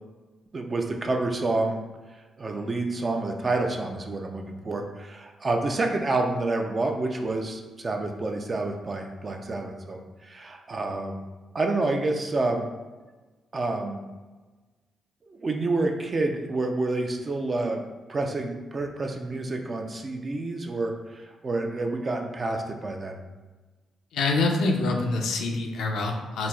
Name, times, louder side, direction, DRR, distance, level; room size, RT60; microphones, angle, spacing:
voice 1, 0.5-1.8 2.4-11.2 11.5-12.7 13.5-14.0 15.3-17.8 18.1-23.2, right 2 dB, 45° right, 3 dB, 0.4 m, -28 dB
voice 2, 24.1-26.5, left 3 dB, 75° left, 2 dB, 0.3 m, -25 dB
3.9 x 2.0 x 2.3 m, 1.2 s
hypercardioid pair, 45°, 0 cm